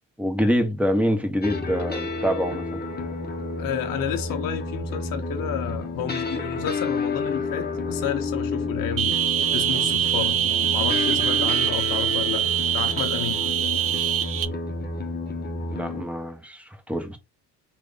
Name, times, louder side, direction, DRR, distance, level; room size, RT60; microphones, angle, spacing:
voice 1, 0.2-2.8 15.7-17.2, equal, 5° right, 1.0 m, -25 dB
sound 1, 1.4-16.0, left 3 dB, 20° left, 1.0 m, -30 dB
voice 2, 3.6-9.1 9.5-10.4 10.7-12.5 12.7-13.4, left 9 dB, 50° left, 0.7 m, -31 dB
sound 2, 9.0-14.4, right 10 dB, 35° right, 0.4 m, -24 dB
3.4 x 2.5 x 3.3 m
hypercardioid pair, 60°, 44 cm